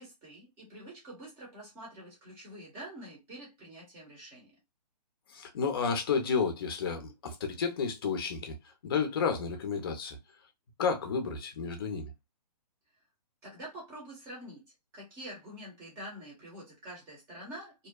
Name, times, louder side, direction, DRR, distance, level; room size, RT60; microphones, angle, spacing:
voice 1, 0.0-4.5 13.4-17.9, right 1 dB, 15° right, 0.9 m, -46 dB
voice 2, 5.3-8.5 8.8-10.2 10.8-12.1, left 5 dB, 35° left, 0.6 m, -31 dB
2.7 x 2.2 x 2.2 m
hypercardioid pair, 165°, 21 cm